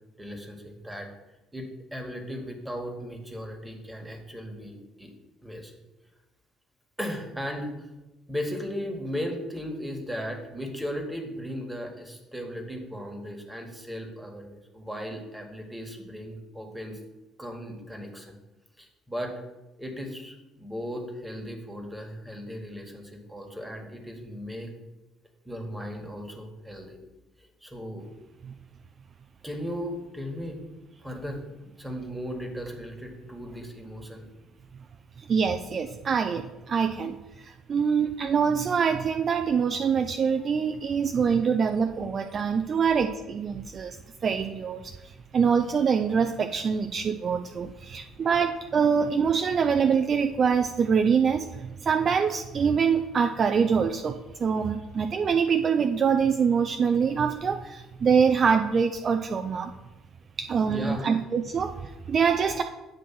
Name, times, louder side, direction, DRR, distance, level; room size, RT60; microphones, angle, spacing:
voice 1, 0.2-1.1 1.5-5.1 5.4-5.7 7.0-7.7 8.3-17.0 17.4-18.3 18.8-19.3 19.8-24.7 25.4-27.0 27.4-28.1 29.4-30.6 31.0-31.4 31.8-34.3 47.9-48.3 60.7-61.2, equal, 5° right, 2 dB, 1.5 m, -36 dB
voice 2, 35.2-44.0 44.2-59.7 60.4-62.6, right 6 dB, 40° right, 6 dB, 0.4 m, -25 dB
8.7 x 3.0 x 5.9 m, 1.0 s
figure-of-eight pair, 50°, 0 cm